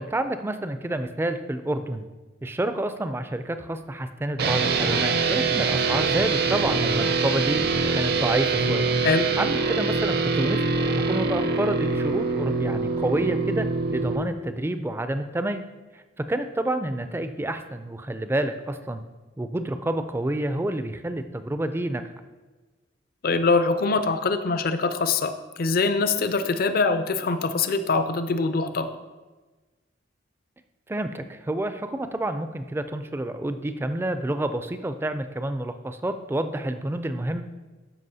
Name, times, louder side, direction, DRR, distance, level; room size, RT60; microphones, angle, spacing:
voice 1, 0.0-2.1 2.4-7.6 7.9-8.9 9.4-13.7 13.9-15.6 15.9-19.0 19.4-22.0 30.9-37.4, right 1 dB, 10° right, 9 dB, 0.3 m, -29 dB
sound 1, 4.4-14.2, right 4 dB, 55° right, 0.6 m, -24 dB
voice 2, 23.2-28.9, left 4 dB, 50° left, 10 dB, 0.5 m, -23 dB
13.0 x 5.5 x 2.7 m, 1.3 s
head